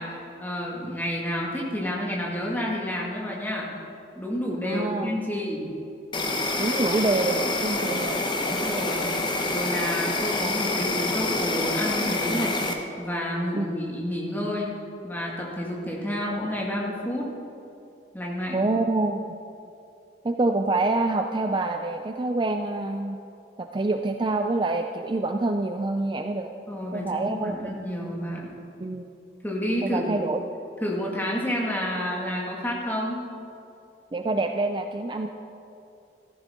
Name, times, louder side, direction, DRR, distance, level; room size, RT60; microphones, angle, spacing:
voice 1, 0.0-3.7 4.2-5.7 8.4-9.1 9.5-12.6 13.0-14.7 15.0-17.3 18.1-18.6 26.7-28.5 29.4-30.1 30.8-33.2, equal, 10° left, -3 dB, 2.0 m, -30 dB
voice 2, 4.6-5.2 6.6-8.2 13.5-13.7 18.5-19.2 20.2-23.2 23.6-26.5 26.9-27.6 28.8-29.1 29.8-30.4 34.1-35.3, right 2 dB, 25° right, 5 dB, 0.4 m, -26 dB
Insect, 6.1-12.7, left 2 dB, 25° left, 0.9 m, -27 dB
14.5 x 14.0 x 3.7 m, 2.7 s
head